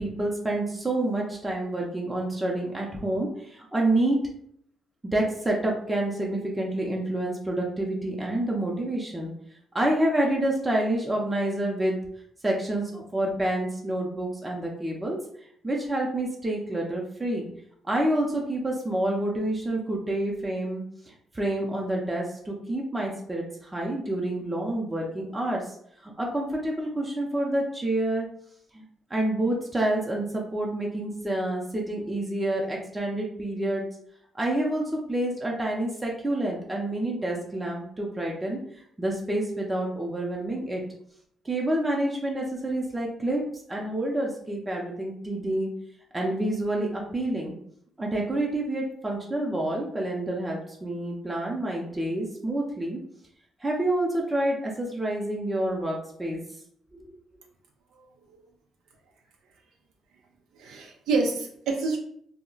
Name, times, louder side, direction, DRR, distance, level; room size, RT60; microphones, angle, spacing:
voice 1, 0.0-4.2 5.1-9.3 9.7-12.0 12.4-15.2 15.6-17.5 17.8-25.8 26.0-28.3 28.7-28.8 29.1-33.8 34.3-38.6 39.0-40.8 41.4-43.4 43.7-45.7 46.1-47.6 48.0-53.0 53.6-56.4 57.0-57.1, right 1 dB, 15° right, -2 dB, 0.5 m, -28 dB
voice 2, 60.5-62.0, right 3 dB, 85° right, 1 dB, 0.4 m, -27 dB
2.2 x 2.0 x 3.8 m, 0.67 s
cardioid pair, 90°, 0 cm